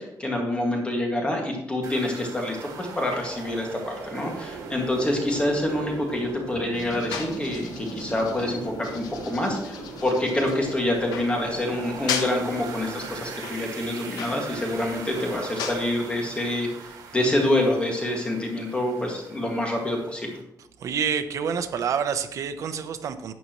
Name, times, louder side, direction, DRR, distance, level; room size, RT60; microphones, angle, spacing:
voice 1, 0.0-20.3, left 1 dB, 15° left, 0 dB, 2.0 m, -27 dB
sound 1, 1.8-20.4, right 4 dB, 80° right, 1.9 m, -39 dB
sound 2, 6.7-15.8, left 7 dB, 90° left, 1.2 m, -37 dB
voice 2, 20.8-23.3, right 7 dB, 55° right, 9 dB, 0.8 m, -27 dB
11.5 x 8.5 x 3.1 m, 0.82 s
cardioid pair, 145°, 6 cm